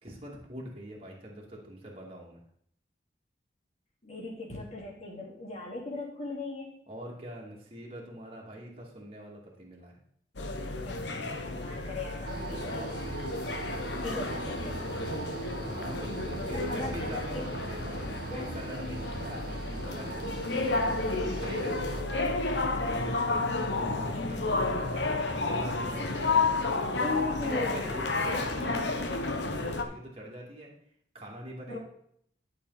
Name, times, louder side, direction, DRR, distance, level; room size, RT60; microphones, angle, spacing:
voice 1, 0.0-2.4 6.9-10.0 15.6-27.1 27.4-30.7 31.1-31.8, right 1 dB, 30° right, -3 dB, 2.5 m, -44 dB
voice 2, 4.0-6.8 10.8-11.1 11.4-13.0 13.9-15.0 16.1-17.8 18.2-18.5 27.0-27.9 28.2-28.7 31.7-31.8, left 2 dB, 35° left, -3 dB, 3.2 m, -38 dB
sound 1, 10.4-29.8, left 3 dB, 70° left, 1.2 m, -31 dB
sound 2, 12.3-22.0, right 4 dB, 55° right, 0.5 m, -41 dB
12.0 x 6.8 x 4.1 m, 0.66 s
head